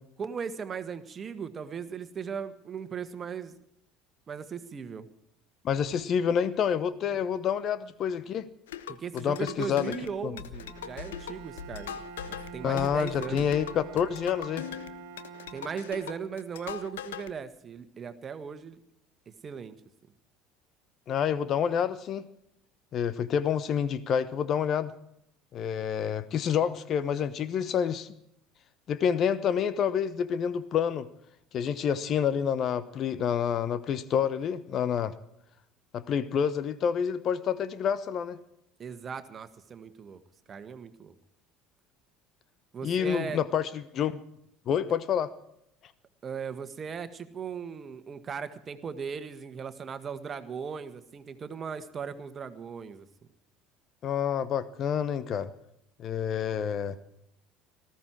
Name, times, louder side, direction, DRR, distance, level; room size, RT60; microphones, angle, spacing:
voice 1, 0.2-3.6 4.3-5.1 7.1-7.2 8.9-12.0 12.2-13.5 15.5-18.8 19.4-19.7 38.8-40.2 40.5-41.1 42.7-43.4 46.2-53.1, right 6 dB, 35° right, 10 dB, 1.6 m, -38 dB
voice 2, 5.6-8.5 9.1-9.8 10.2-10.3 12.6-14.7 21.1-22.3 22.9-24.9 25.5-28.1 28.9-31.1 31.5-35.2 35.9-38.4 42.8-44.2 44.7-45.3 54.0-55.5 56.0-57.0, left 8 dB, 45° left, 15 dB, 1.0 m, -28 dB
sound 1, 8.7-17.3, left 9 dB, 75° left, 0.9 m, -40 dB
Bowed string instrument, 10.6-16.7, right 7 dB, 65° right, 1.5 m, -46 dB
19.0 x 14.5 x 4.7 m, 0.75 s
figure-of-eight pair, 65°, 0 cm